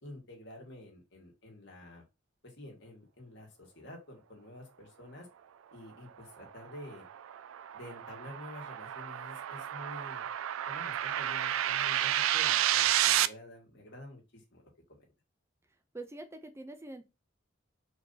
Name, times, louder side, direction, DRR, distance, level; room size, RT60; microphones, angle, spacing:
voice 1, 0.0-2.0 2.4-5.3 5.7-7.1 7.7-10.3 10.7-15.1, left 1 dB, 60° left, -1 dB, 1.8 m, -49 dB
sound 1, 6.4-13.3, right 12 dB, 80° right, 0.3 m, -31 dB
voice 2, 15.9-17.1, right 2 dB, 15° right, 7 dB, 0.5 m, -44 dB
4.5 x 2.7 x 3.9 m, 0.26 s
head